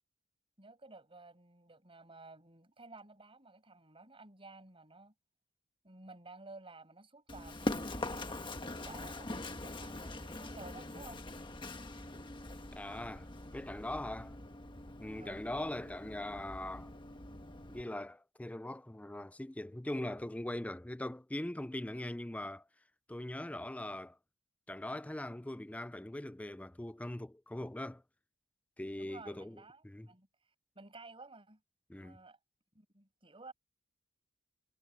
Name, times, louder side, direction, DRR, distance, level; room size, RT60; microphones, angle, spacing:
voice 1, 0.6-5.1 5.8-11.2 15.1-15.5 29.0-30.3 30.8-31.6 31.9-32.4 32.7-33.5, right 3 dB, 25° right, 7.3 m, -54 dB
Run, 7.3-17.8, left 1 dB, 25° left, 1.4 m, -43 dB
voice 2, 12.8-14.4 15.0-16.9 17.7-22.6 23.1-24.2 24.7-28.0 28.8-30.1 31.9-32.2, left 1 dB, 5° left, 0.4 m, -41 dB
head